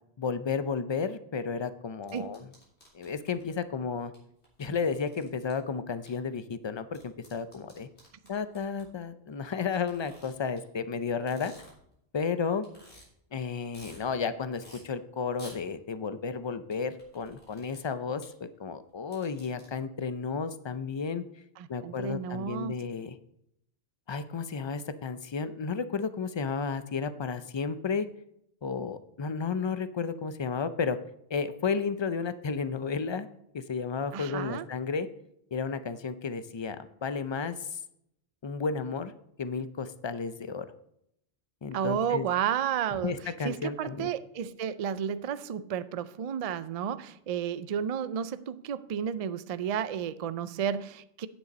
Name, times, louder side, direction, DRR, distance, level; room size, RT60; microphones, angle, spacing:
voice 1, 0.2-2.5 2.9-4.1 4.6-7.9 8.3-11.5 12.1-12.6 13.3-21.2 21.7-23.2 24.1-28.1 28.6-31.0 31.3-33.3 33.5-35.1 35.5-37.8 38.4-39.1 39.4-40.7 41.6-42.3 43.0-44.1, left 5 dB, 40° left, 12 dB, 0.4 m, -32 dB
sound 1, 2.1-3.5 4.1-4.2 4.4-5.5 6.1-6.2 6.9-8.8 9.7-10.6 11.1-11.9 12.3-12.4 12.6-13.0 13.4-14.0 14.6-14.8 15.3-15.6 16.7-17.8 18.2-18.3 18.9-19.7, equal, 90° left, 3.6 m, -53 dB
voice 2, 21.6-22.8 34.1-34.7 41.7-43.2 43.4-51.3, right 8 dB, 55° right, 14 dB, 0.4 m, -32 dB
9.3 x 7.8 x 4.1 m, 0.76 s
omnidirectional pair, 1.1 m